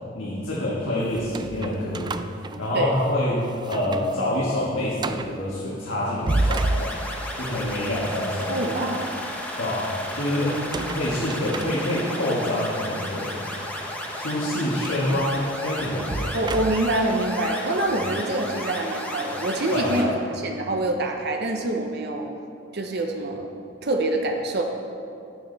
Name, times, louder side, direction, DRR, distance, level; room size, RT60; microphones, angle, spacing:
voice 1, 0.1-2.1 2.6-7.0 7.3-8.7 9.6-13.5 14.1-16.3 17.9-18.1 19.7-20.2, left 1 dB, 80° left, -7 dB, 2.0 m, -27 dB
sound 1, 1.1-3.2 3.6-4.2 4.5-4.6 5.0-5.4 6.0-7.4 10.5-12.3 12.9-13.1 14.8-17.1, right 2 dB, 25° right, 0.4 m, -31 dB
sound 2, 6.3-20.0, left 1 dB, 10° left, 1.4 m, -33 dB
voice 2, 8.5-9.1 16.3-22.3 22.7-23.5 23.8-24.6, right 2 dB, 60° right, 2 dB, 0.9 m, -25 dB
12.0 x 9.9 x 4.1 m, 2.6 s
head